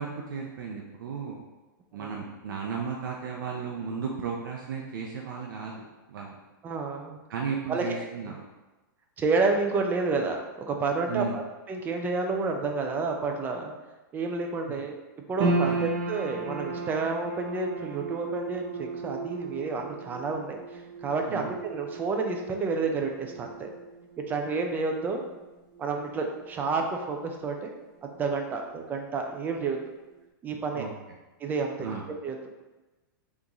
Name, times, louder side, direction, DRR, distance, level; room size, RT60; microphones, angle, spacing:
voice 1, 0.0-1.4 1.9-6.3 7.3-8.4 11.1-11.4 15.6-15.8 21.3-21.5 30.8-30.9 31.8-32.1, right 6 dB, 75° right, -1 dB, 0.6 m, -34 dB
voice 2, 6.6-7.2 7.7-8.0 8.3-8.4 9.2-11.4 11.7-13.7 14.1-15.0 15.3-23.7 24.3-25.3 25.8-27.7 28.0-29.8 30.4-30.9 31.4-32.6, right 4 dB, 15° right, 3 dB, 0.4 m, -30 dB
sound 1, 15.4-27.8 28.1-29.0 29.5-29.6, right 3 dB, 35° right, 0.8 m, -35 dB
3.5 x 3.1 x 3.9 m, 1.1 s
hypercardioid pair, 145°, 11 cm